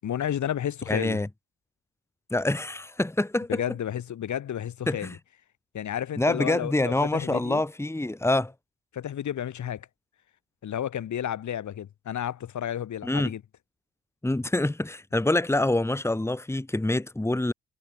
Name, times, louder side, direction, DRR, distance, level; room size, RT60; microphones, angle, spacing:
voice 1, 0.0-1.2 3.5-5.1 5.7-7.6 8.9-9.9 10.6-13.4, left 10 dB, 65° left, 6.7 m, -31 dB
voice 2, 0.9-1.3 2.3-3.6 4.9-5.2 6.2-8.5 13.0-13.3 14.2-17.5, left 2 dB, 10° left, 2.9 m, -26 dB
cardioid pair, 120°, 31 cm